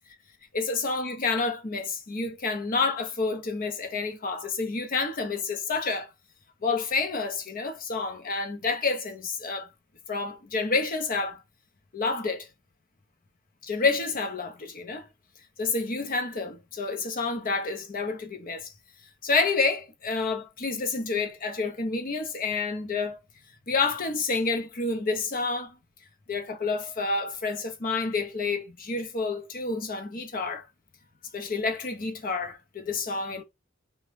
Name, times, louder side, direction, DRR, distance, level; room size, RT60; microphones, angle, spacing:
voice 1, 0.5-6.1 6.6-9.7 10.1-11.4 11.9-12.5 13.6-15.1 15.6-18.7 19.2-23.2 23.7-25.8 26.3-30.6 31.3-33.4, left 4 dB, 45° left, 0.7 m, -29 dB
2.9 x 2.2 x 3.2 m
head